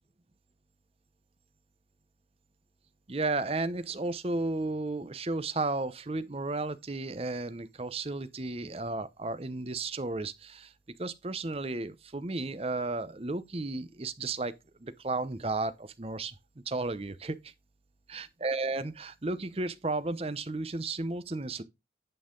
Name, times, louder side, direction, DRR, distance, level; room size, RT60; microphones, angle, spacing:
voice 1, 3.1-10.7 11.0-14.5 14.8-16.4 16.7-17.5 18.1-21.6, right 2 dB, 35° right, 0.7 m, -33 dB
8.8 x 5.6 x 3.7 m
head